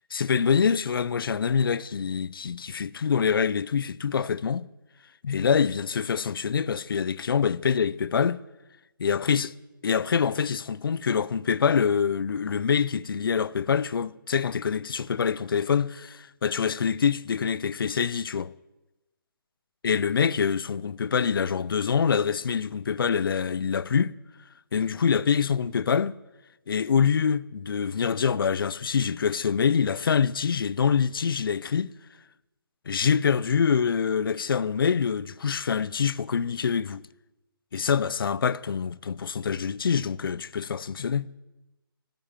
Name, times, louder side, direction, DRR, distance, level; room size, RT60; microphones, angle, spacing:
voice 1, 0.1-4.7 5.2-8.4 9.0-9.5 9.8-18.5 19.8-24.1 24.7-26.2 26.7-31.9 32.9-37.0 37.7-41.3, left 6 dB, 70° left, 0.6 m, -25 dB
16.0 x 9.1 x 8.9 m
hypercardioid pair, 170°, 12 cm